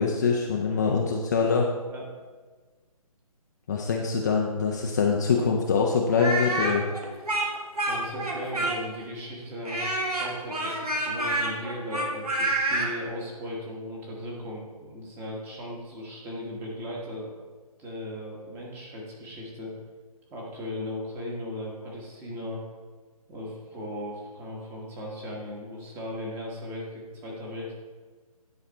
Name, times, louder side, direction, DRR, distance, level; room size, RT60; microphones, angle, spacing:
voice 1, 0.0-1.7 3.7-6.8, left 5 dB, 30° left, 0 dB, 0.5 m, -24 dB
Speech, 6.1-9.0 9.7-12.9, right 2 dB, 85° right, 1.7 m, -28 dB
voice 2, 7.9-17.4 17.8-19.7 20.3-22.6 23.3-27.8, left 1 dB, 10° right, -2 dB, 1.2 m, -37 dB
10.0 x 4.2 x 4.2 m, 1.3 s
figure-of-eight pair, 145°, 19 cm